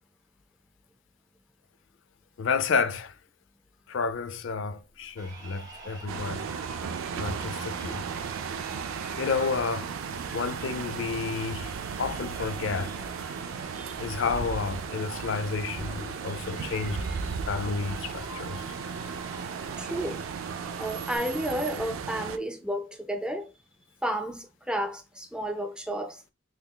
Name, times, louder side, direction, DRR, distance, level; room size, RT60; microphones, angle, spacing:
voice 1, 2.4-3.1 3.9-6.4 7.1-8.0 9.2-9.9 10.3-11.7 12.0-12.9 14.0-17.0 17.5-18.6, left 5 dB, 70° left, 0.4 m, -30 dB
Crowd, 5.1-21.2, right 1 dB, 25° right, 2.2 m, -46 dB
sound 1, 6.1-22.4, right 6 dB, 85° right, 0.4 m, -35 dB
voice 2, 19.7-20.2 20.7-23.5 24.0-26.2, right 1 dB, 5° right, 0.4 m, -32 dB
3.9 x 3.3 x 2.2 m
head